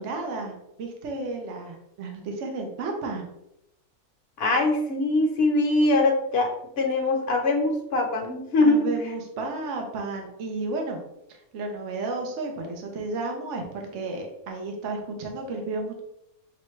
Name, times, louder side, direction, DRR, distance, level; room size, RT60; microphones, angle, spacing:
voice 1, 0.0-3.2 8.6-11.0 11.3-16.0, right 3 dB, 60° right, 2 dB, 1.0 m, -32 dB
voice 2, 4.4-8.9, left 2 dB, 50° left, 1 dB, 0.9 m, -22 dB
6.2 x 2.2 x 3.1 m, 0.84 s
omnidirectional pair, 1.5 m